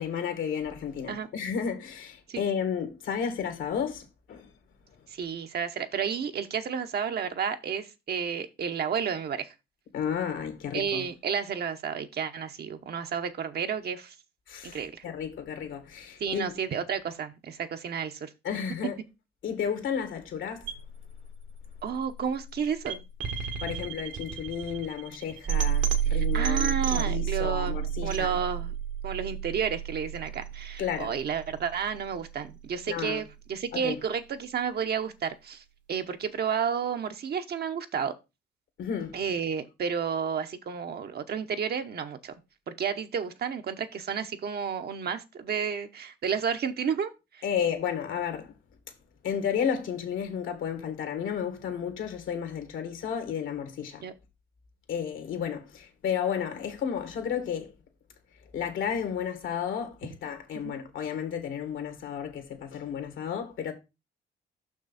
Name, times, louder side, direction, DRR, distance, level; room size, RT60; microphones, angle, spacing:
voice 1, 0.0-4.5 9.9-11.0 14.5-14.8 15.0-16.5 18.4-19.0 19.4-20.7 23.6-28.3 30.8-31.1 32.9-33.2 33.7-33.9 38.8-39.2 47.4-48.5 49.2-54.0 54.9-57.7 58.5-63.7, left 7 dB, 80° left, 2.1 m, -32 dB
voice 2, 5.1-9.5 10.7-14.1 14.6-15.0 16.2-18.3 21.8-23.0 26.2-28.7 29.0-35.6 35.9-38.1 39.1-42.4 42.7-47.4 54.0-54.1 60.5-60.7, right 7 dB, 55° right, 1.0 m, -31 dB
sound 1, 20.6-32.7, right 9 dB, 70° right, 1.5 m, -31 dB
6.1 x 6.0 x 4.2 m
cardioid pair, 90°, 20 cm